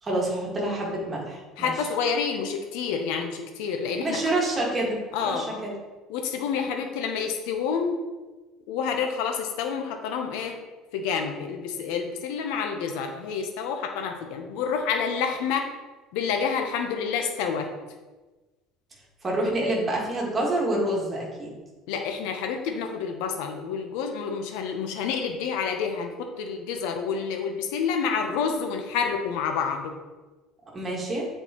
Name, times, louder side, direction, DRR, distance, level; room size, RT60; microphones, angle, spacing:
voice 1, 0.0-1.7 4.0-5.7 19.2-21.5 30.7-31.2, right 1 dB, 20° right, -3 dB, 1.7 m, -27 dB
voice 2, 1.6-4.2 5.1-5.6 6.1-8.0 8.7-10.6 10.9-15.7 16.1-17.7 21.9-29.9, left 6 dB, 80° left, 4 dB, 0.7 m, -28 dB
8.1 x 4.4 x 3.0 m, 1.2 s
cardioid pair, 145°, 0 cm